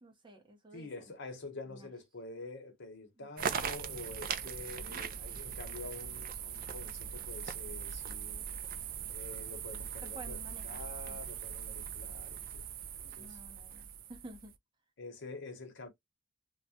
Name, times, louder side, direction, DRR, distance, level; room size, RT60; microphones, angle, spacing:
voice 1, 0.0-1.1 1.7-1.9 3.2-3.3 4.8-5.1 10.0-11.2 13.0-14.5, right 2 dB, 25° right, 0.8 m, -52 dB
voice 2, 0.7-8.4 9.1-10.4 10.6-12.6 13.0-13.4 15.0-15.9, left 3 dB, 60° left, 0.8 m, -47 dB
sound 1, 3.4-14.5, right 7 dB, 45° right, 0.4 m, -40 dB
2.3 x 2.1 x 2.7 m
head